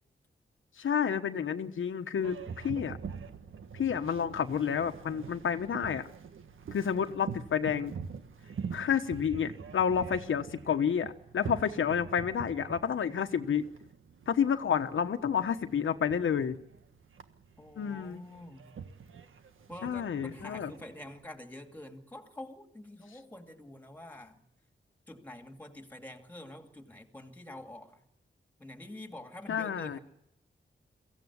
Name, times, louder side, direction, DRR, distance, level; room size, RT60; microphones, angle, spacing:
voice 1, 0.8-3.0 3.7-6.1 6.7-7.9 8.7-13.7 14.3-16.6 17.8-18.2 19.8-20.7 29.5-30.0, left 7 dB, 85° left, 1.2 m, -30 dB
Boat Water vehicle, 2.2-21.2, right 6 dB, 90° right, 1.6 m, -45 dB
voice 2, 17.6-18.7 19.7-24.5 25.1-28.0 28.6-30.0, left 1 dB, 10° left, 2.4 m, -47 dB
24.0 x 16.0 x 9.6 m
wide cardioid pair, 175°, 20 cm